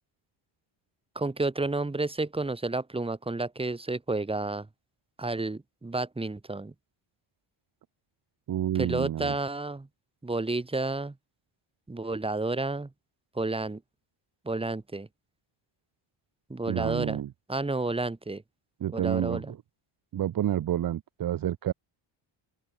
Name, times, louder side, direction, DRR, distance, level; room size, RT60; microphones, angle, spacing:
voice 1, 1.1-4.7 5.2-6.7 8.7-9.9 10.2-11.2 11.9-12.9 13.3-13.8 14.4-15.1 16.5-17.2 17.5-18.4 18.9-19.5, right 2 dB, 10° right, 4.6 m, -31 dB
voice 2, 8.5-9.3 16.7-17.3 18.8-19.6 20.1-21.7, right 11 dB, 40° right, 1.3 m, -29 dB
open air
cardioid pair, 170°, 50 cm